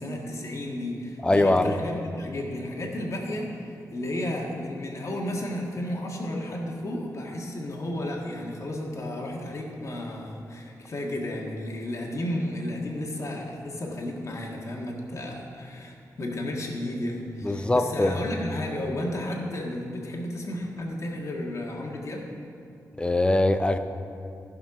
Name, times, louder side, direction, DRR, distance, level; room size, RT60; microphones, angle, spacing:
voice 1, 0.0-22.2, left 1 dB, 50° left, -1 dB, 1.7 m, -33 dB
voice 2, 1.2-1.7 17.4-18.1 23.0-23.8, left 2 dB, 15° left, 9 dB, 0.6 m, -22 dB
14.0 x 5.7 x 6.0 m, 2.5 s
wide cardioid pair, 120°, 7 cm